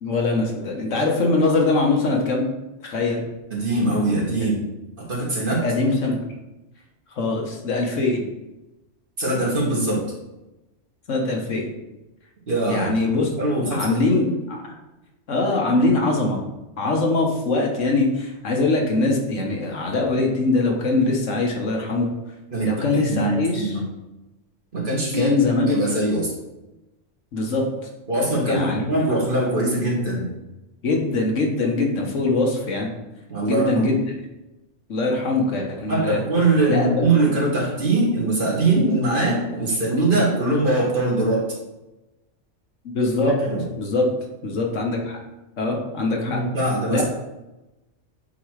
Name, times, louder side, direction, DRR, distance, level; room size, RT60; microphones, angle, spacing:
voice 1, 0.0-2.5 2.8-3.2 4.4-4.5 5.6-6.2 7.1-8.2 11.1-11.7 12.7-13.3 13.7-14.8 15.3-16.4 16.8-22.1 22.6-23.8 25.1-25.8 27.3-27.6 28.4-28.8 30.8-32.9 33.4-34.0 34.9-36.2 36.7-36.9 42.9-43.3 43.8-44.1 44.4-45.2 45.6-46.4 46.9-47.0, left 3 dB, 80° left, 0 dB, 1.5 m, -22 dB
voice 2, 3.5-4.6 5.0-5.6 9.2-10.0 12.5-12.9 13.4-14.0 22.5-23.8 24.7-25.4 25.7-26.3 28.1-30.3 33.3-33.9 35.9-41.4 43.2-43.6 46.2-47.0, right 2 dB, 45° right, -4 dB, 1.9 m, -22 dB
7.9 x 3.1 x 4.7 m, 1.0 s
omnidirectional pair, 1.3 m